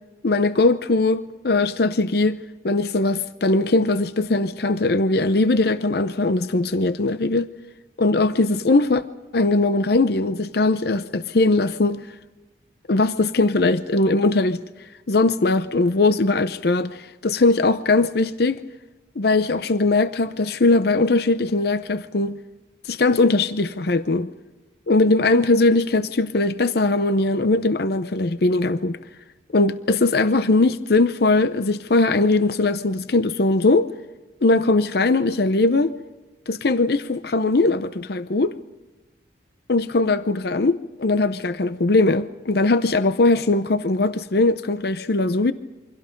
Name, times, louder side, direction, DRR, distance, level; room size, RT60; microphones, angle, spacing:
voice 1, 0.2-2.4 2.6-7.5 8.0-9.0 9.3-12.0 12.9-14.6 15.1-18.6 19.2-22.4 22.8-24.3 24.9-29.0 29.5-33.9 34.4-35.9 36.5-38.6 39.7-45.5, left 2 dB, 55° left, 0.7 m, -20 dB
28.5 x 24.5 x 5.2 m
head